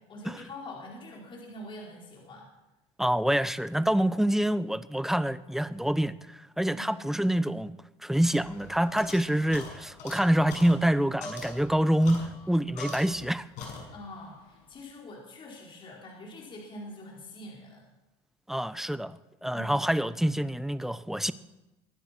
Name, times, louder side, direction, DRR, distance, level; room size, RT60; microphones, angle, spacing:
voice 1, 0.0-2.5 6.7-6.9 13.9-17.8 19.5-19.8, left 1 dB, 35° left, 4.6 m, -44 dB
voice 2, 3.0-7.7 8.0-13.5 18.5-21.3, right 1 dB, 5° right, 0.7 m, -26 dB
sound 1, 8.1-13.3 13.6-14.2, left 3 dB, 60° left, 6.3 m, -43 dB
23.5 x 10.5 x 6.0 m
supercardioid pair, 105°, 14 cm